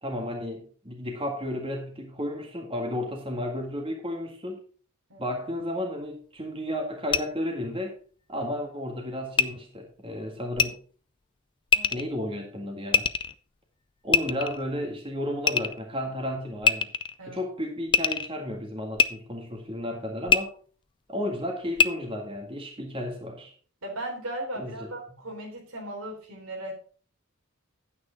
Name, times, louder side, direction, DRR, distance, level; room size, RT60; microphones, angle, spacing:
voice 1, 0.0-4.6 5.2-8.0 8.3-10.8 11.9-13.1 14.0-16.9 17.3-20.5 21.1-23.5 24.6-24.9, left 1 dB, 25° right, 1 dB, 1.8 m, -33 dB
sound 1, 7.1-7.2 9.4-9.5 10.5-10.7 11.7-12.0 12.9-13.3 14.1-14.6 15.5-15.8 16.6-17.2 17.9-18.3 19.0-19.1 20.3-20.4 21.8-21.9, left 6 dB, 25° left, 0.4 m, -22 dB
voice 2, 23.8-26.7, right 1 dB, 85° right, 1 dB, 3.9 m, -37 dB
9.5 x 8.7 x 4.0 m, 0.41 s
head